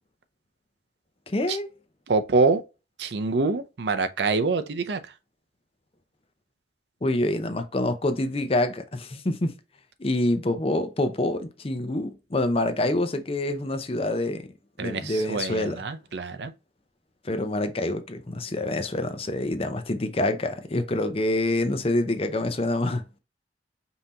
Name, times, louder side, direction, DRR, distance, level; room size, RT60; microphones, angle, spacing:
voice 1, 1.3-1.7 7.0-9.5 10.0-14.5 14.8-15.8 17.2-23.2, left 1 dB, 30° left, 0.6 m, -26 dB
voice 2, 2.1-2.6 3.0-5.0 14.8-16.5, right 3 dB, 65° right, 0.5 m, -25 dB
5.4 x 2.8 x 2.8 m
head